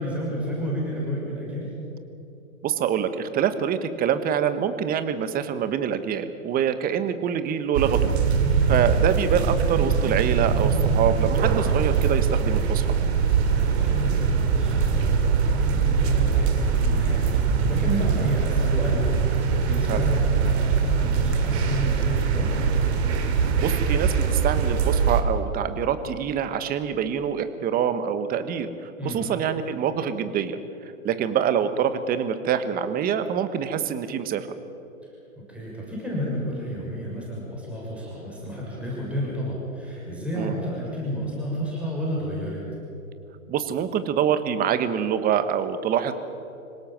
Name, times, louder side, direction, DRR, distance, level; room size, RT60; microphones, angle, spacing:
voice 1, 0.0-1.7 8.3-8.9 13.5-22.5 29.0-29.3 35.5-42.6, equal, 5° right, -5 dB, 6.6 m, -31 dB
voice 2, 2.6-8.1 8.7-12.8 19.9-20.1 23.6-30.6 31.0-34.5 40.4-40.5 43.5-46.1, right 8 dB, 20° right, 11 dB, 1.3 m, -25 dB
sound 1, 7.7-25.2, right 6 dB, 50° right, 2.7 m, -22 dB
26.0 x 17.5 x 7.6 m, 2.9 s
hypercardioid pair, 120°, 42 cm